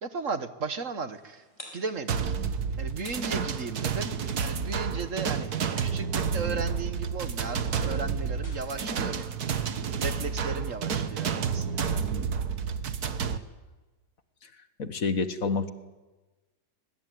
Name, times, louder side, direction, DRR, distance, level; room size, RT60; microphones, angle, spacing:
voice 1, 0.0-1.4 1.7-2.3 2.8-5.5 5.8-9.4 9.8-12.0, right 4 dB, 50° right, 10 dB, 1.7 m, -36 dB
sound 1, 1.1-10.1, left 1 dB, 15° left, 5.9 m, -55 dB
sound 2, 2.1-13.4, right 6 dB, 65° right, 1.8 m, -30 dB
voice 2, 14.8-15.7, left 4 dB, 55° left, 10 dB, 1.8 m, -28 dB
25.0 x 23.5 x 9.4 m, 1.2 s
omnidirectional pair, 1.8 m